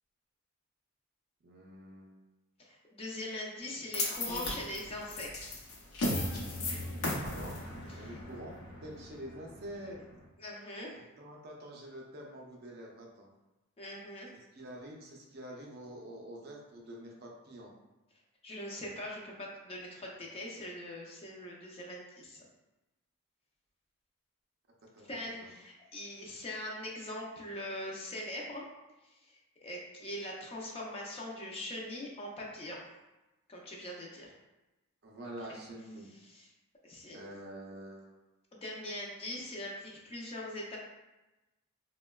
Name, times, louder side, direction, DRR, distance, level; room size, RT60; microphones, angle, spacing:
voice 1, 1.4-2.1 4.3-4.4 7.2-7.6 7.9-10.0 11.2-13.3 14.5-17.7 24.9-25.0 25.4-25.5 35.0-36.1 37.1-38.2, right 1 dB, 45° right, -1 dB, 0.5 m, -46 dB
voice 2, 2.6-5.6 8.0-8.1 10.4-11.0 13.8-14.3 18.4-22.4 25.0-28.6 29.3-32.8 33.5-34.3 35.5-35.6 36.3-36.5 36.8-37.3 38.5-40.8, left 1 dB, 25° left, -2 dB, 0.4 m, -42 dB
sound 1, 3.9-10.2, left 1 dB, 70° left, 0.6 m, -37 dB
3.7 x 2.1 x 2.2 m, 1.0 s
head